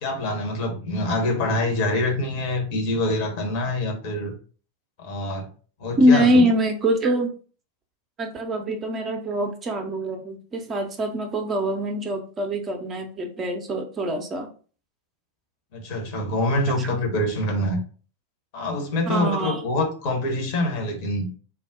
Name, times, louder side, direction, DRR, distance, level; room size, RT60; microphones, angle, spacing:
voice 1, 0.0-4.3 5.0-5.5 5.8-6.4 15.7-17.8 18.5-21.3, left 1 dB, 45° left, 0.8 m, -25 dB
voice 2, 6.0-7.3 8.2-14.5 16.8-17.0 19.1-19.6, equal, 25° right, 0.5 m, -23 dB
2.3 x 2.0 x 3.6 m
figure-of-eight pair, 90°, 0 cm